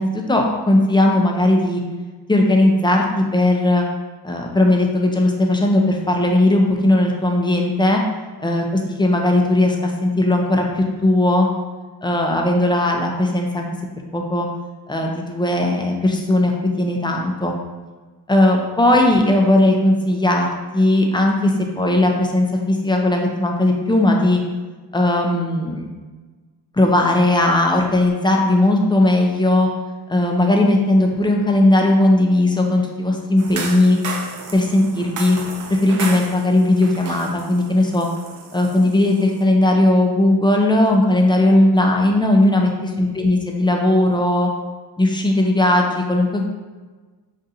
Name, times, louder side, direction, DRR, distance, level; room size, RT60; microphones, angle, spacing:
voice 1, 0.0-1.8 2.3-3.8 4.2-8.0 8.4-8.6 9.0-11.5 12.0-13.7 14.1-14.5 14.9-16.5 16.8-17.5 18.3-20.5 20.7-24.4 24.9-25.9 26.7-29.7 30.1-34.0 34.5-35.4 35.7-38.1 38.5-42.7 43.0-44.5 45.0-46.4, left 1 dB, 10° left, 1 dB, 0.4 m, -17 dB
sound 1, 33.4-39.4, right 4 dB, 50° right, 0.5 m, -33 dB
2.5 x 2.5 x 4.1 m, 1.3 s
cardioid pair, 75°, 41 cm